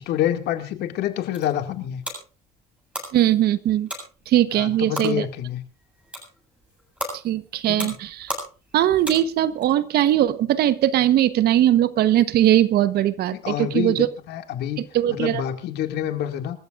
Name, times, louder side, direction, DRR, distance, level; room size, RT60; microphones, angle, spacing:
voice 1, 0.0-2.0 4.5-5.6 7.6-7.9 13.3-14.8 15.1-16.6, left 11 dB, 75° left, 6 dB, 2.3 m, -27 dB
sound 1, 1.0-9.7, equal, 5° right, 7.8 m, -37 dB
voice 2, 3.1-3.9 4.3-5.3 7.2-8.3 8.7-14.1 14.8-15.4, right 12 dB, 70° right, 14 dB, 1.1 m, -20 dB
26.5 x 14.0 x 2.6 m, 0.36 s
cardioid pair, 110°, 17 cm